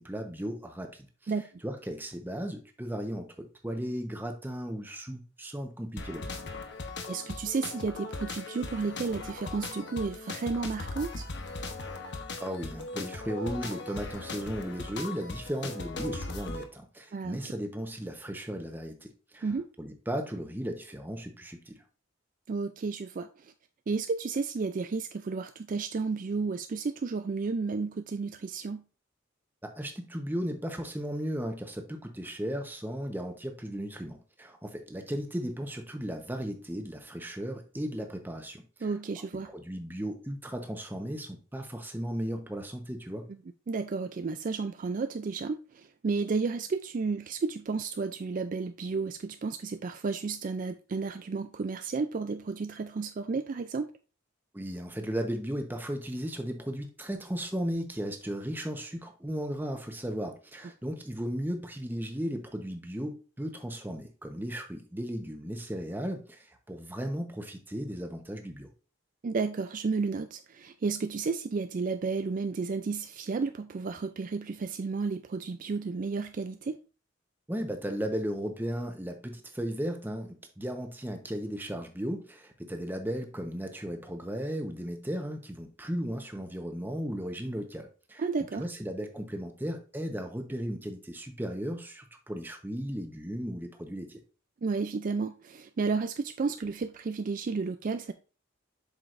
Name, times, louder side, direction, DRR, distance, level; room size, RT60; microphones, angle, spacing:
voice 1, 0.0-1.3 1.6-6.3 12.4-19.5 19.8-21.8 29.6-38.9 39.4-43.3 54.5-68.7 77.5-88.2 88.6-94.2, equal, 10° right, 1.0 m, -36 dB
sound 1, 6.0-16.6, left 3 dB, 60° left, 1.0 m, -39 dB
voice 2, 7.1-11.3 17.1-17.4 19.4-19.7 22.5-23.5 23.9-28.8 38.8-39.5 43.7-53.9 69.2-76.8 88.2-88.6 94.6-98.1, right 4 dB, 40° right, 0.3 m, -32 dB
7.7 x 6.1 x 2.5 m
head